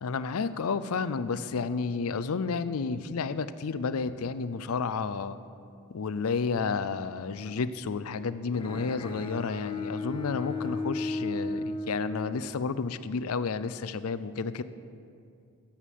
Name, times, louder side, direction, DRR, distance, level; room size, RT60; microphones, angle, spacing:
voice 1, 0.0-5.4 5.9-14.6, left 5 dB, 75° left, 14 dB, 0.5 m, -31 dB
Bowed string instrument, 8.5-12.8, left 2 dB, 25° left, 0.9 m, -35 dB
11.0 x 7.3 x 8.4 m, 2.5 s
head